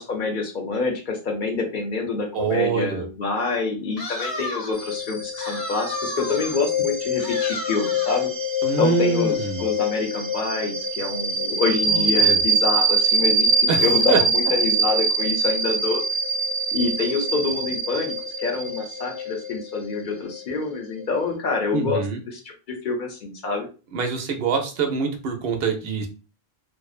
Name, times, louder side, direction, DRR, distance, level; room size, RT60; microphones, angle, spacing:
voice 1, 0.0-8.3 8.8-16.0 16.7-22.0 22.3-22.4 22.7-23.7, left 4 dB, 55° left, 2 dB, 0.7 m, -26 dB
voice 2, 2.3-3.1 8.6-9.6 11.9-12.4 13.7-14.2 21.7-22.2 23.9-26.1, right 5 dB, 70° right, 4 dB, 0.8 m, -25 dB
sound 1, 4.0-4.9 5.4-6.6 7.2-8.3, left 1 dB, 80° left, 1.0 m, -33 dB
sound 2, 4.7-21.0, right 2 dB, 20° right, 0.4 m, -24 dB
2.5 x 2.1 x 2.4 m, 0.33 s
omnidirectional pair, 1.0 m